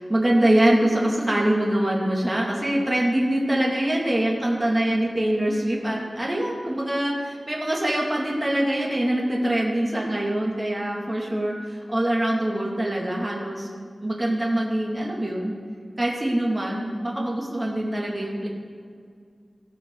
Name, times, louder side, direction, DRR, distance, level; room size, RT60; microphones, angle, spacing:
voice 1, 0.0-13.7 14.0-15.5 16.0-18.5, right 1 dB, 20° right, -2 dB, 2.1 m, -24 dB
17.0 x 6.1 x 3.8 m, 2.1 s
wide cardioid pair, 75°, 0 cm